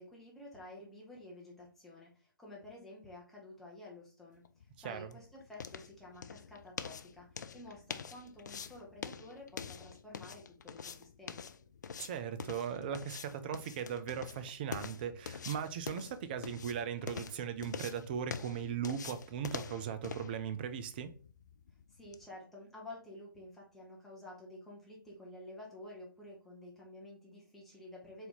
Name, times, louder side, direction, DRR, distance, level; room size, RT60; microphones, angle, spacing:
voice 1, 0.0-4.4 4.8-11.5 21.9-28.3, left 1 dB, ahead, 0.9 m, -51 dB
sound 1, 4.5-22.3, left 6 dB, 50° left, 0.4 m, -46 dB
voice 2, 12.0-21.1, right 8 dB, 25° right, 0.4 m, -38 dB
4.0 x 2.7 x 3.8 m
figure-of-eight pair, 135°, 12 cm